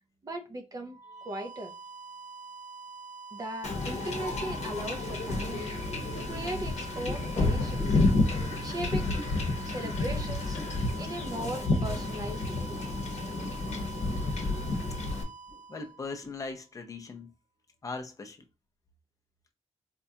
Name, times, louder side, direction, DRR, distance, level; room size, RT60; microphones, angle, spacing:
voice 1, 0.2-1.0 1.2-1.7 3.3-5.8 6.1-8.0 8.6-9.1 9.7-10.6 11.0-12.7, right 1 dB, 30° right, 0.5 m, -38 dB
sound 1, 0.8-16.6, right 4 dB, 85° right, 0.5 m, -46 dB
Wind / Ocean / Boat Water vehicle, 3.6-15.2, left 2 dB, 65° left, 0.8 m, -30 dB
sound 2, 7.0-7.3 7.8-8.1 8.5-8.7 9.1-9.4 9.8-10.0 10.5-10.8 11.2-11.4 11.9-12.1 12.7-12.9 13.4-13.6 14.1-14.3 14.6-14.9 15.5-15.6 16.2-16.3, equal, 5° left, 0.9 m, -45 dB
voice 2, 15.7-17.3 17.8-18.4, left 3 dB, 30° left, 0.5 m, -39 dB
4.3 x 2.3 x 2.7 m
wide cardioid pair, 180°, 12 cm